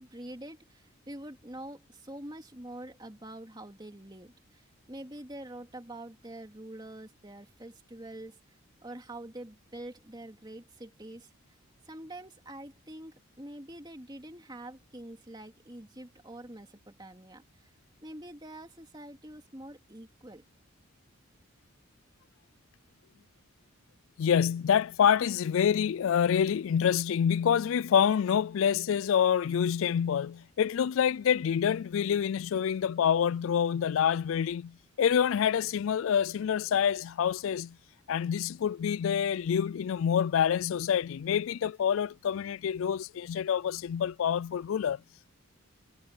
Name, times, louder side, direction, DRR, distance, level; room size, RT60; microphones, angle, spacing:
voice 1, 0.0-8.4 8.8-11.3 11.8-17.7 18.0-20.4, right 1 dB, 20° right, 2.6 m, -45 dB
voice 2, 24.2-37.8 38.1-45.0, left 8 dB, 70° left, 0.3 m, -27 dB
head